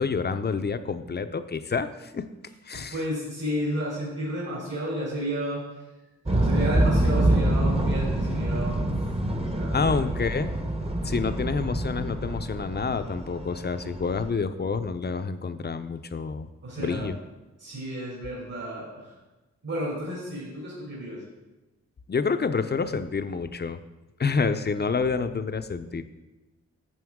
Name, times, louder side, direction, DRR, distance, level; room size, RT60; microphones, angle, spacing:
voice 1, 0.0-2.3 2.7-3.0 9.7-10.5 11.0-16.5 16.8-17.1 22.1-23.8 24.2-26.0, left 5 dB, 35° left, 10 dB, 0.6 m, -28 dB
voice 2, 2.7-5.6 6.3-9.0 9.4-10.0 16.6-17.1 17.6-19.2 19.6-21.2, right 1 dB, 65° right, -6 dB, 3.2 m, -32 dB
sound 1, 6.3-14.3, right 1 dB, 20° right, 0.9 m, -26 dB
9.2 x 6.9 x 3.7 m, 1.1 s
cardioid pair, 60°, 29 cm